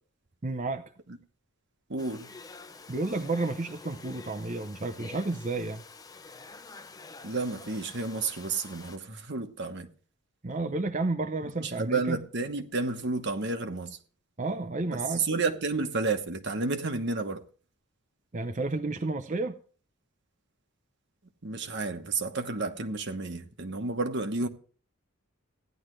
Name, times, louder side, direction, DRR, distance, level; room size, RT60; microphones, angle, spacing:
voice 1, 0.4-0.9 2.9-5.8 10.4-12.2 14.4-15.3 18.3-19.6, right 2 dB, 35° right, 0.6 m, -31 dB
voice 2, 1.9-2.3 7.2-9.9 11.4-14.0 14.9-17.4 21.4-24.5, right 3 dB, 50° right, 1.1 m, -31 dB
Domestic sounds home sounds, 2.0-9.0, left 4 dB, 15° left, 0.5 m, -48 dB
16.0 x 10.5 x 3.2 m
head